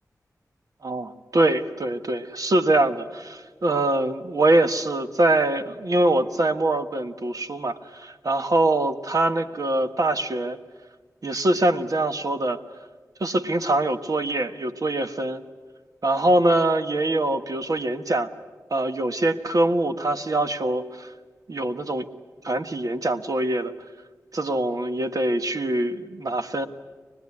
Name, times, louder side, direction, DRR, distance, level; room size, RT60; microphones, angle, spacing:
voice 1, 0.8-10.6 11.2-12.6 13.2-15.4 16.0-18.3 18.7-21.1 21.5-22.1 22.4-23.7 24.3-26.7, right 2 dB, 65° right, 8 dB, 1.5 m, -23 dB
25.0 x 20.0 x 9.8 m, 1.4 s
cardioid pair, 45°, 7 cm